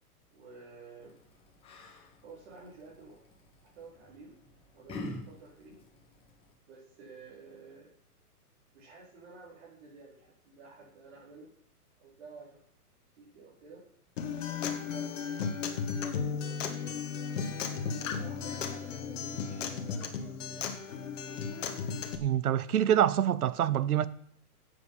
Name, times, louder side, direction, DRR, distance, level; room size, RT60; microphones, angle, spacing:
voice 1, 0.3-1.2 2.2-3.2 3.6-4.3 4.7-5.8 6.7-7.9 8.7-11.5 12.0-12.6 13.2-13.8 14.5-15.4 15.9-17.1 18.1-20.7, right 4 dB, 45° right, 4.4 m, -52 dB
Yell, 1.0-6.5, left 1 dB, 10° left, 1.6 m, -47 dB
Acoustic guitar, 14.2-22.2, left 6 dB, 50° left, 1.9 m, -35 dB
voice 2, 22.2-24.1, right 10 dB, 70° right, 1.0 m, -26 dB
13.5 x 8.4 x 5.5 m
hypercardioid pair, 160°, 47 cm